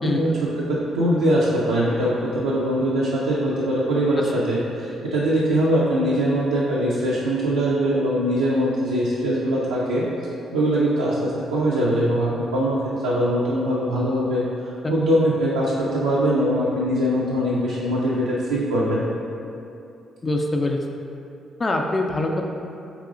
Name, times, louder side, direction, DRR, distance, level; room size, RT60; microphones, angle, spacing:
voice 1, 0.0-10.0 10.5-19.0, equal, 85° right, -7 dB, 0.4 m, -22 dB
voice 2, 20.2-20.8 21.6-22.4, left 2 dB, 35° left, 2 dB, 0.3 m, -23 dB
4.8 x 2.9 x 2.4 m, 2.7 s
hypercardioid pair, 45°, 0 cm